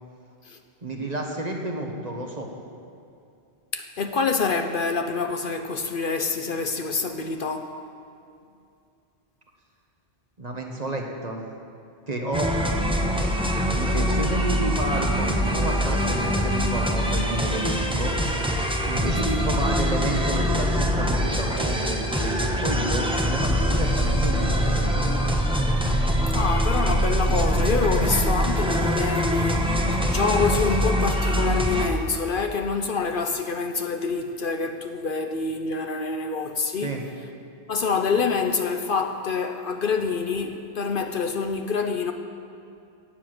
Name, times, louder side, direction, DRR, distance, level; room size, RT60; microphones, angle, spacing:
voice 1, 0.8-2.5 10.4-11.4 12.1-12.5 13.7-18.1 18.8-25.0 36.8-37.0, right 1 dB, 40° right, 1.6 m, -30 dB
voice 2, 3.7-7.8 19.2-19.5 25.7-25.8 26.3-37.0 37.7-42.1, left 4 dB, 55° left, 0.9 m, -26 dB
sound 1, 12.3-31.9, equal, 5° right, 1.0 m, -23 dB
17.5 x 7.3 x 7.8 m
omnidirectional pair, 1.1 m